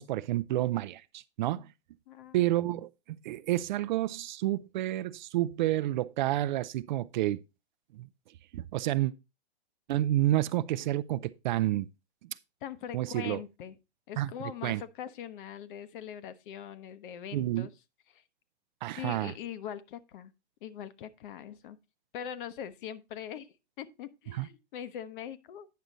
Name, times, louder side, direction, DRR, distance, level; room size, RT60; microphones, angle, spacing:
voice 1, 0.0-1.7 2.3-2.9 3.2-7.4 7.9-8.1 8.5-9.1 9.9-11.9 12.9-13.4 14.2-14.3 14.6-14.8 17.3-17.7 18.8-19.3 24.3-24.5, right 15 dB, 45° right, 0.5 m, -29 dB
voice 2, 2.1-2.4 2.7-2.8 12.6-13.7 14.1-17.7 18.1-18.2 19.0-20.3 20.6-21.8 22.1-23.5 23.8-25.7, left 9 dB, 50° left, 0.9 m, -42 dB
9.4 x 6.1 x 3.9 m
hypercardioid pair, 120°, 33 cm